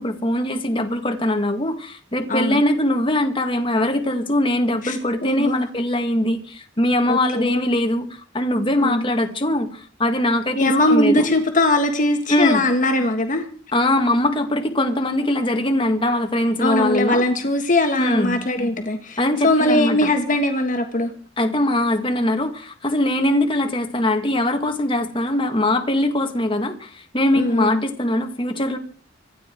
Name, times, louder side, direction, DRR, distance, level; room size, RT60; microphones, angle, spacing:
voice 1, 0.0-11.4 12.3-12.6 13.7-17.2 18.0-18.4 19.2-20.1 21.4-28.8, left 1 dB, 25° left, 5 dB, 1.9 m, -21 dB
voice 2, 2.3-2.6 4.8-5.0 5.2-5.7 7.1-7.5 8.8-9.1 10.6-13.5 16.6-21.1 27.3-27.8, left 1 dB, 40° left, 5 dB, 1.7 m, -20 dB
26.0 x 9.9 x 4.6 m, 0.43 s
head